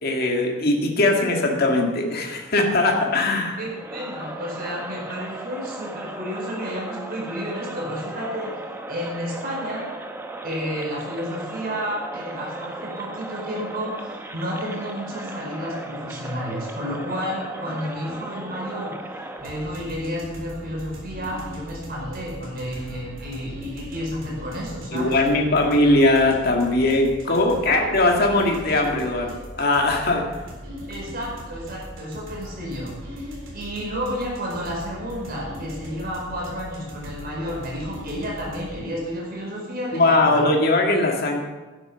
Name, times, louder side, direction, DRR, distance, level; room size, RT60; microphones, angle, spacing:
voice 1, 0.0-3.6 24.9-30.3 39.9-41.4, left 2 dB, 50° left, 2 dB, 2.0 m, -20 dB
Crowd, 3.6-19.9, right 1 dB, 10° right, 0.9 m, -36 dB
voice 2, 3.6-8.6 8.9-9.9 10.4-18.9 19.4-25.2 27.3-27.4 27.7-27.8 30.9-40.4, equal, 50° right, -2 dB, 4.7 m, -31 dB
sound 1, 19.4-38.8, equal, 75° right, 3.7 m, -39 dB
12.0 x 10.0 x 5.8 m, 1.2 s
head